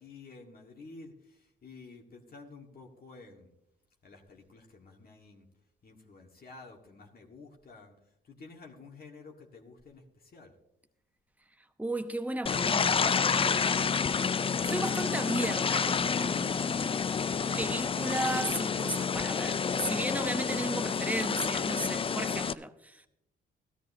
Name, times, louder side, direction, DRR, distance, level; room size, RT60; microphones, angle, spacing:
voice 1, 0.0-3.5 4.0-5.5 5.8-7.9 8.2-10.5, left 3 dB, 45° left, 1.7 m, -51 dB
voice 2, 11.8-14.2 14.6-17.0 17.6-23.1, right 1 dB, 5° right, 0.9 m, -35 dB
sound 1, 12.5-22.5, left 6 dB, 25° left, 0.4 m, -29 dB
15.5 x 13.5 x 2.7 m
cardioid pair, 80°, 21 cm